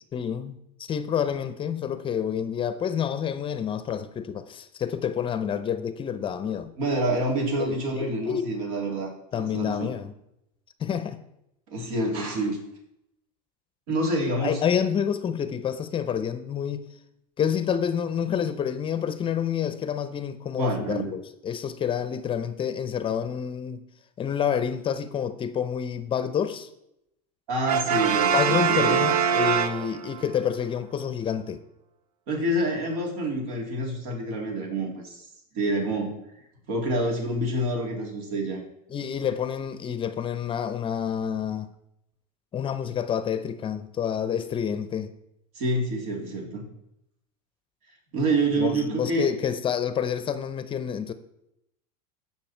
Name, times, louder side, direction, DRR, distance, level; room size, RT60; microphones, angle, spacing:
voice 1, 0.1-0.5 0.8-6.7 7.6-8.5 9.3-10.1 10.8-11.2 14.4-16.9 17.4-23.8 24.2-26.7 28.3-31.6 38.9-41.7 42.5-45.1 48.6-51.1, left 8 dB, 25° left, 0.7 m, -28 dB
voice 2, 6.8-9.9 11.7-12.6 13.9-14.6 20.6-21.1 27.5-29.0 32.3-35.3 35.5-36.1 36.7-38.6 45.5-46.6 48.1-49.3, right 1 dB, 70° right, 3.5 m, -27 dB
Brass instrument, 27.7-30.3, right 7 dB, 90° right, 0.7 m, -23 dB
15.0 x 5.8 x 4.5 m
supercardioid pair, 125°, 19 cm